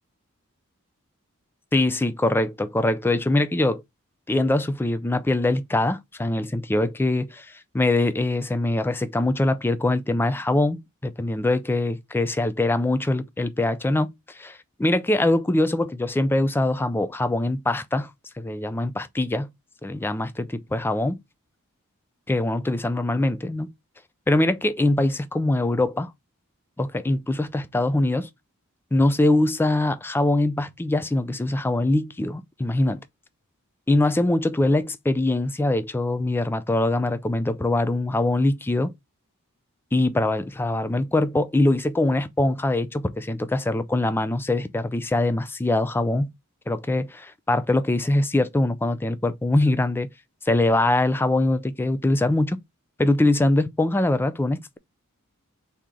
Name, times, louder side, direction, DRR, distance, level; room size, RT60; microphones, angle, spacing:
voice 1, 1.7-3.8 4.3-18.1 18.4-19.5 19.8-21.2 22.3-23.7 24.3-26.1 26.8-28.3 28.9-33.0 33.9-38.9 39.9-46.3 46.7-50.1 50.4-52.6 53.0-54.8, left 2 dB, 10° left, 0.3 m, -23 dB
3.7 x 2.8 x 4.7 m
head